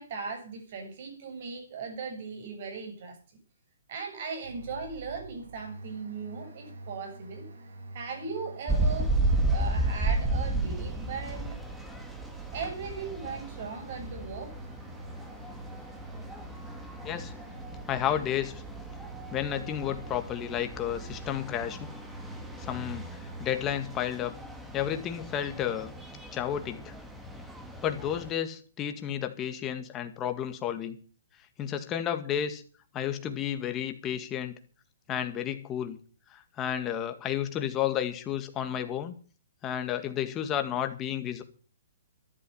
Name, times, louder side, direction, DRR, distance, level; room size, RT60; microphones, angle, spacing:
voice 1, 0.0-3.2 3.9-7.5 7.9-9.2 9.5-11.6 12.5-14.5, right 5 dB, 50° right, 5 dB, 7.7 m, -38 dB
sound 1, 4.4-24.0, right 3 dB, 85° right, 5.6 m, -46 dB
sound 2, 8.7-28.3, right 2 dB, 5° right, 1.9 m, -34 dB
voice 2, 17.9-18.6 19.3-21.9 22.6-24.3 24.7-25.9 26.3-26.9 27.8-31.0 31.6-32.6 32.9-34.5 35.1-36.0 36.3-39.1 39.6-41.4, left 10 dB, 20° left, 7 dB, 2.0 m, -32 dB
13.5 x 12.0 x 5.6 m, 0.39 s
hypercardioid pair, 155°, 0 cm